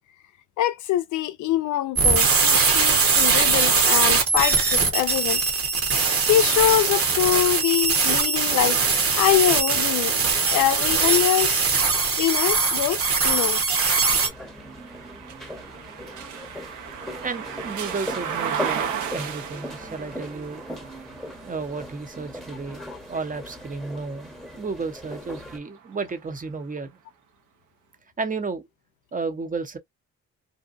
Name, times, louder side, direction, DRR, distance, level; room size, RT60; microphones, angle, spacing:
voice 1, 0.6-5.4 6.3-8.8 9.2-10.2 10.5-11.6 12.2-13.6, left 12 dB, 75° left, 0.5 m, -24 dB
sound 1, 2.0-14.3, right 5 dB, 50° right, 1.0 m, -21 dB
sound 2, 9.6-24.6 25.2-26.4, right 8 dB, 75° right, 0.8 m, -37 dB
sound 3, 14.2-25.6, equal, ahead, 0.9 m, -39 dB
voice 2, 17.2-20.6 21.4-24.3 24.6-27.0 28.2-28.7 29.1-29.8, right 4 dB, 25° right, 0.7 m, -32 dB
2.6 x 2.2 x 2.5 m
cardioid pair, 90°, 30 cm